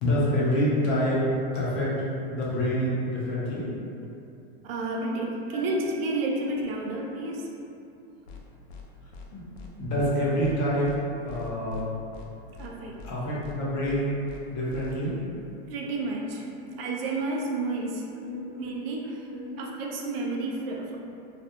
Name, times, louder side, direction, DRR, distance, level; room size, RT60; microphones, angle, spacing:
voice 1, 0.0-1.2 1.5-1.9 2.3-3.7 5.5-5.6 9.3-9.4 9.8-10.9 11.2-11.9 13.0-14.1 14.5-15.2 16.7-16.8 18.2-18.5 19.3-19.6 20.9-21.0, equal, 35° left, -7 dB, 0.5 m, -27 dB
voice 2, 4.6-7.5 12.6-13.0 15.7-16.5 16.8-18.0 18.3-19.3 19.6-21.0, right 2 dB, 65° right, 0 dB, 0.5 m, -31 dB
sound 1, 8.3-8.4 8.7-8.8 9.1-9.3 9.5-9.7 10.0-10.1 10.4-10.6 10.8-11.0 11.3-11.8 12.1-12.3 12.5-12.7 13.0-13.1 13.4-13.6 13.8-14.0 14.3-14.4 14.7-14.9, left 4 dB, 90° left, 0.5 m, -43 dB
2.4 x 2.1 x 2.7 m, 2.7 s
supercardioid pair, 160°, 31 cm